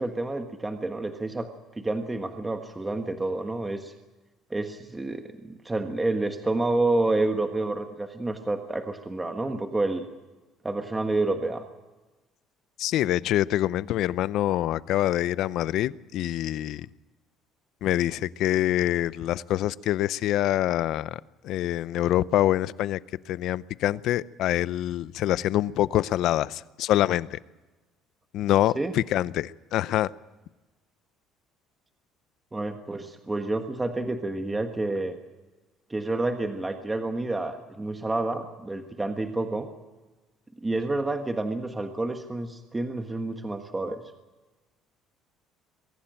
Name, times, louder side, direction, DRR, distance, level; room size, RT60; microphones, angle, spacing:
voice 1, 0.0-1.5 1.8-3.9 4.5-10.0 10.6-11.7 28.8-28.9 32.5-35.1 35.9-39.7 40.6-44.0, right 2 dB, 15° right, 6 dB, 1.5 m, -29 dB
voice 2, 12.8-16.9 17.8-23.0 23.3-27.4 28.3-30.1, left 13 dB, 65° left, 18 dB, 0.6 m, -25 dB
23.5 x 16.0 x 9.0 m, 1.2 s
cardioid pair, 125°, 0 cm